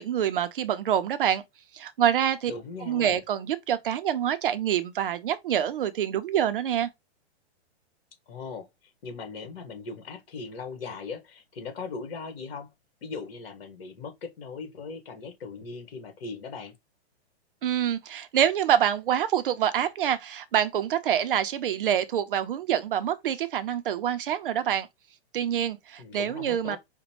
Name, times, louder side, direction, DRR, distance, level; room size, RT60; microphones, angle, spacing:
voice 1, 0.0-1.4 1.7-2.5 2.9-6.9 17.6-24.9 25.3-26.8, right 10 dB, 55° right, 0.5 m, -26 dB
voice 2, 2.5-3.2 8.3-12.7 13.0-16.7 26.0-26.8, left 4 dB, 60° left, 1.5 m, -39 dB
5.0 x 2.2 x 3.0 m
hypercardioid pair, 160°, 33 cm